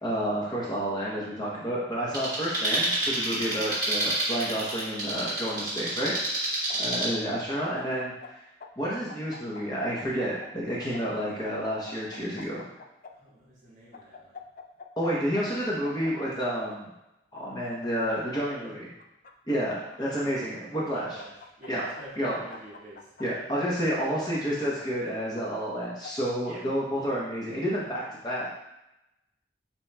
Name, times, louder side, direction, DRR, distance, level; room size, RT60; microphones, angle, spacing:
voice 1, 0.0-6.4 6.8-8.3 8.8-12.6 15.0-16.9 17.3-18.9 19.5-21.1 21.7-21.9 22.2-22.4 23.2-28.5, equal, 20° left, -5 dB, 0.8 m, -30 dB
sound 1, 2.1-7.1, right 1 dB, 20° right, 1.4 m, -29 dB
sound 2, 6.7-8.3 8.6-10.5 10.9-13.1 13.9-15.1 15.3-15.4 15.8-16.8 17.3-18.4 19.0-20.0 20.8-21.7 22.0-23.2 23.9-24.8 25.4-26.3, left 5 dB, 45° left, 0.3 m, -45 dB
voice 2, 10.6-11.3 13.1-14.4 15.3-15.4 18.1-18.8 20.0-20.5 20.9-23.1 26.5-26.7, right 1 dB, 40° right, -8 dB, 1.6 m, -47 dB
7.0 x 3.0 x 2.2 m, 0.92 s
head